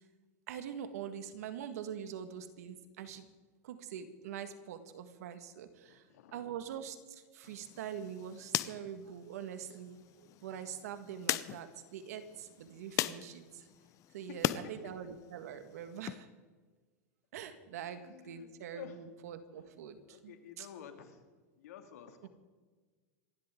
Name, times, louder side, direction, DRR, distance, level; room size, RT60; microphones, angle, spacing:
voice 1, 0.5-3.3 3.6-6.1 6.3-13.7 14.1-16.3 17.3-20.7 22.2-22.3, right 8 dB, 75° right, 9 dB, 1.7 m, -44 dB
voice 2, 5.8-6.6 14.3-14.7 17.7-19.0 19.5-19.7 20.1-21.2 21.6-22.3, left 9 dB, 80° left, 6 dB, 2.4 m, -51 dB
sound 1, 7.4-14.6 15.0-16.1, left 14 dB, 40° left, 0.7 m, -40 dB
27.5 x 11.5 x 3.8 m, 1.4 s
supercardioid pair, 125°, 8 cm